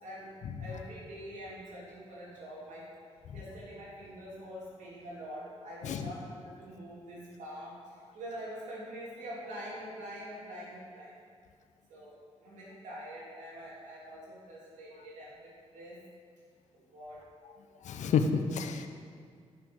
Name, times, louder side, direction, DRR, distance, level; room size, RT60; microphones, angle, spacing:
voice 1, 0.6-2.9 3.3-11.1 11.9-12.1 12.4-15.4 15.7-16.0 16.7-17.2, equal, 85° right, -6 dB, 2.9 m, -45 dB
voice 2, 17.8-18.9, left 6 dB, 80° left, 6 dB, 0.7 m, -29 dB
11.5 x 5.9 x 6.3 m, 2.2 s
cardioid pair, 60°, 12 cm